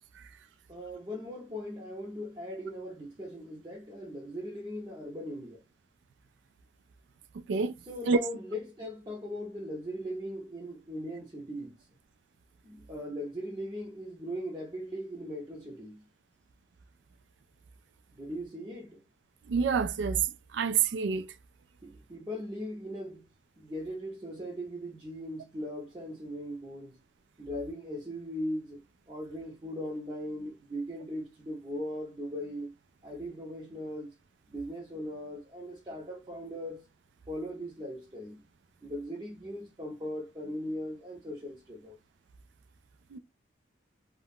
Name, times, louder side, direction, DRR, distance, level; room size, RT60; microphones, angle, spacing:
voice 1, 0.7-5.6 7.9-11.7 12.6-16.1 18.2-19.0 21.8-23.3 23.6-27.0 27.4-28.8 29.1-32.7 33.0-34.1 34.5-36.8 37.3-38.4 38.8-42.0, equal, 25° right, 0.6 m, -39 dB
voice 2, 19.5-20.2 20.5-21.3 43.1-43.2, right 5 dB, 75° right, 0.3 m, -27 dB
2.3 x 2.1 x 3.4 m
head